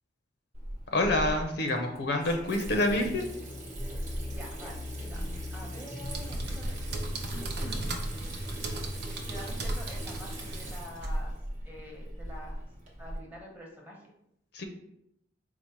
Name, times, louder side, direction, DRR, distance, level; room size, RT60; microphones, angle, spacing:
Water tap faucet / Sink (filling or washing), 0.5-13.2, right 1 dB, 45° right, 0.9 m, -40 dB
voice 1, 0.9-3.2 14.5-14.6, left 1 dB, 60° left, 4 dB, 0.5 m, -27 dB
sound 1, 2.9-7.1, left 2 dB, 10° left, 0.5 m, -42 dB
voice 2, 4.3-7.0 7.3-7.9 9.3-11.4 11.6-12.6 13.0-14.0, equal, 10° right, -2 dB, 0.9 m, -46 dB
sound 2, 6.0-11.2, right 1 dB, 60° right, 0.6 m, -36 dB
4.5 x 2.1 x 4.2 m, 0.78 s
head